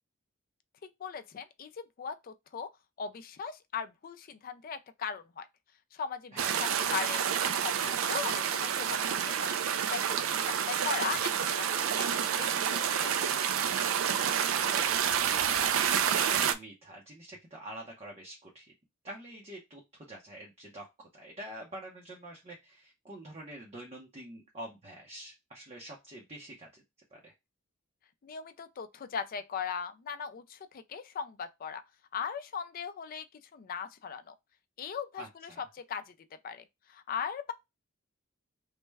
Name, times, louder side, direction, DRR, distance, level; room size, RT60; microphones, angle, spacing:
voice 1, 0.8-2.7 3.0-5.5 5.9-7.2 7.5-9.6 9.9-13.4 28.2-31.8 32.1-33.3 33.5-34.3 34.8-36.1 36.4-37.5, left 6 dB, 45° left, 0.3 m, -39 dB
voice 2, 6.3-6.8 14.5-18.7 19.0-26.8 27.1-27.3 35.2-35.6, right 1 dB, 30° right, 0.6 m, -46 dB
sound 1, 6.4-16.5, right 8 dB, 70° right, 0.3 m, -29 dB
3.2 x 2.1 x 3.3 m
head